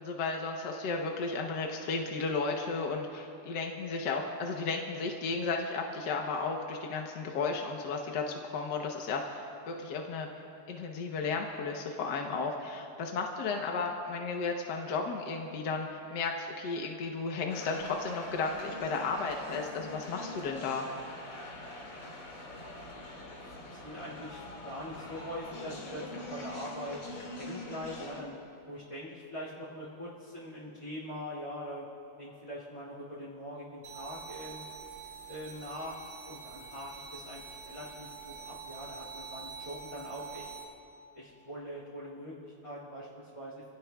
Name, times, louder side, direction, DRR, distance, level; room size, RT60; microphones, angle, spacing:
voice 1, 0.0-10.3 10.7-20.9, left 4 dB, 70° left, 2 dB, 1.5 m, -34 dB
sound 1, 17.5-28.2, left 1 dB, 90° left, 2.9 m, -44 dB
voice 2, 23.3-27.0 27.4-28.4 28.7-31.9 32.2-34.7 35.3-36.0 36.3-40.5 41.1-43.6, equal, 15° left, -9 dB, 2.5 m, -42 dB
sound 2, 33.8-40.6, right 6 dB, 70° right, 2.6 m, -46 dB
27.5 x 17.0 x 2.3 m, 2.6 s
omnidirectional pair, 2.0 m